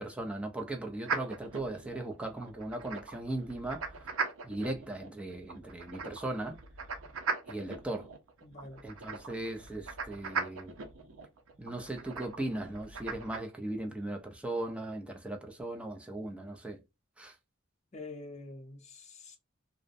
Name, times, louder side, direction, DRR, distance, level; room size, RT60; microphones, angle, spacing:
voice 1, 0.0-4.1 4.4-6.6 7.5-8.1 8.8-10.7 11.6-16.8 17.2-17.4, right 1 dB, 5° right, 0.4 m, -38 dB
sound 1, 1.0-13.4, right 4 dB, 90° right, 0.5 m, -40 dB
voice 2, 8.4-8.8 17.9-19.4, left 2 dB, 35° left, 0.6 m, -46 dB
2.5 x 2.0 x 2.5 m
head